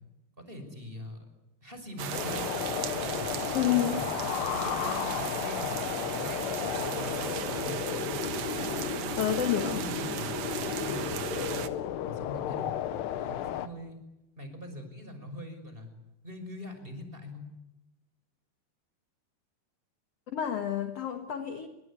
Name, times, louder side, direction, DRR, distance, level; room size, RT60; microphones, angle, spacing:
voice 1, 0.5-1.2 1.6-2.5 2.9-4.1 4.5-5.8 6.1-8.2 8.5-11.6 12.0-14.0 14.4-15.9 16.2-17.5, left 1 dB, 10° right, 7 dB, 5.3 m, -43 dB
sound 1, 2.0-11.7, right 9 dB, 75° right, 1.5 m, -36 dB
sound 2, 2.1-13.7, left 11 dB, 75° left, 3.2 m, -34 dB
voice 2, 3.5-4.0 9.2-9.8 20.3-21.7, left 10 dB, 55° left, 7 dB, 1.7 m, -29 dB
29.0 x 24.0 x 8.6 m, 0.95 s
omnidirectional pair, 5.0 m